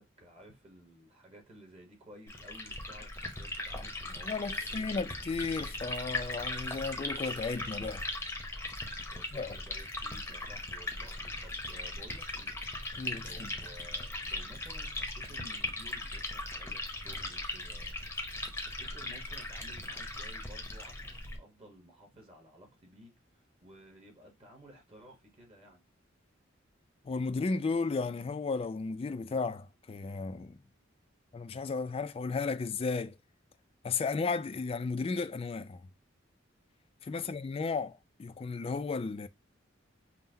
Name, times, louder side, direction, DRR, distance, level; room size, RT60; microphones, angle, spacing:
voice 1, 0.0-5.0 9.0-12.6 12.9-18.0 18.3-25.8 37.1-37.4, equal, 30° right, 1.1 m, -55 dB
Liquid, 2.3-21.4, left 2 dB, 10° left, 0.8 m, -39 dB
voice 2, 4.2-8.0 9.3-9.6 13.0-13.5 27.1-30.6 31.3-33.2 33.8-35.8 37.0-39.3, left 4 dB, 30° left, 0.3 m, -34 dB
5.5 x 2.1 x 2.7 m
head